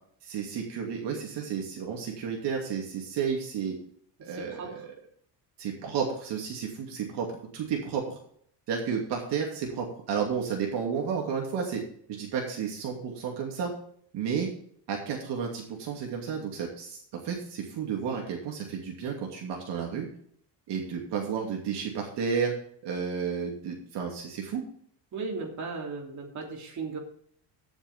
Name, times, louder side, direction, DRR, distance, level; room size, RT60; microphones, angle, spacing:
voice 1, 0.2-3.7 4.2-4.9 5.6-7.3 7.5-8.2 8.7-11.8 12.1-13.7 14.1-14.5 14.9-17.0 17.2-20.1 20.7-22.5 22.8-24.6, right 6 dB, 60° right, 0 dB, 2.7 m, -32 dB
voice 2, 4.3-4.7 25.1-27.0, right 4 dB, 35° right, 0 dB, 3.2 m, -36 dB
15.0 x 7.2 x 3.6 m, 0.62 s
cardioid pair, 150°, 46 cm